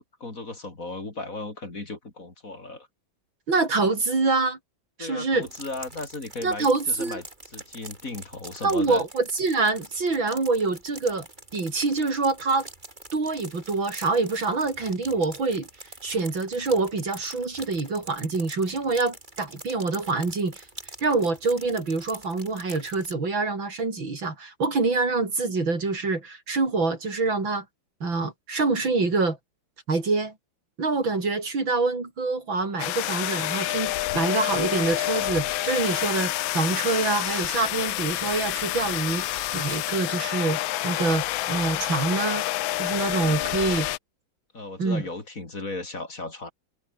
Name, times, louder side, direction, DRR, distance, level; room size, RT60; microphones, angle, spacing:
voice 1, 0.0-2.9 5.0-9.0 43.1-43.8 44.5-46.5, left 2 dB, 40° left, 4.3 m, -36 dB
voice 2, 3.5-4.6 5.0-5.5 6.4-7.2 8.6-11.3 11.5-12.7 13.1-15.7 16.0-20.6 21.0-27.7 28.0-29.4 29.9-30.3 30.8-42.4 42.8-43.9 44.8-45.0, right 3 dB, 80° right, 5.3 m, -26 dB
sound 1, 5.4-23.1, right 2 dB, 25° right, 4.6 m, -45 dB
sound 2, 32.8-44.0, left 16 dB, 85° left, 1.5 m, -28 dB
omnidirectional pair, 2.1 m